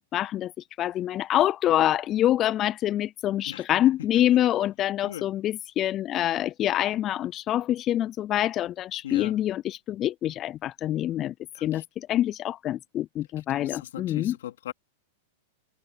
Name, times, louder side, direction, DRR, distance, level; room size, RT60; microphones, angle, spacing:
voice 1, 0.1-0.5 0.8-11.3 11.6-14.3, left 12 dB, 30° left, 0.4 m, -26 dB
voice 2, 9.0-9.4 11.5-11.8 13.5-14.7, left 12 dB, 80° left, 3.4 m, -38 dB
hypercardioid pair, 140°, 0 cm